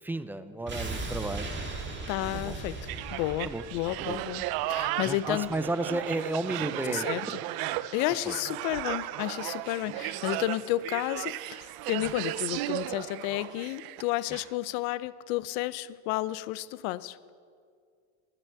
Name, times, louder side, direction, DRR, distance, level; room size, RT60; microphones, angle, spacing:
voice 1, 0.0-1.6 2.3-2.5 3.4-3.6 4.1-4.2 5.0-7.1 8.2-8.3, right 2 dB, 5° right, 12 dB, 0.4 m, -33 dB
sound 1, 0.7-5.6 5.9-6.0, right 3 dB, 25° right, 1.9 m, -38 dB
voice 2, 2.1-5.5 6.9-7.4 7.9-17.2, left 16 dB, 80° left, 18 dB, 0.6 m, -32 dB
sound 2, 2.9-14.0 14.3-14.5, right 15 dB, 60° right, 0.5 m, -35 dB
20.0 x 7.8 x 4.6 m, 2.2 s
supercardioid pair, 110°, 41 cm